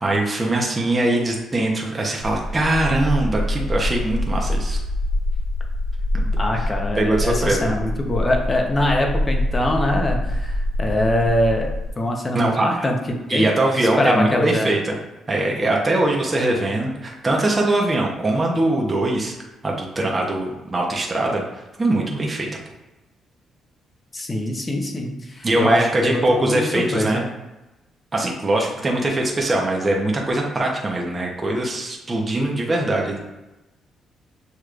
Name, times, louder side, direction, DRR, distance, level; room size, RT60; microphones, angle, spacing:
voice 1, 0.0-4.8 6.1-6.3 7.0-7.7 12.3-12.7 13.3-14.9 15.3-19.3 19.6-22.5 25.4-27.2 28.1-33.2, right 2 dB, 25° right, -1 dB, 0.8 m, -22 dB
sound 1, 2.2-11.9, left 1 dB, 80° right, 0.5 m, -25 dB
voice 2, 6.4-11.7 12.0-13.0 13.3-13.5 13.8-14.7 24.1-27.2, left 1 dB, 25° left, 2 dB, 0.8 m, -23 dB
6.8 x 3.0 x 2.5 m, 1.0 s
cardioid pair, 90°, 0 cm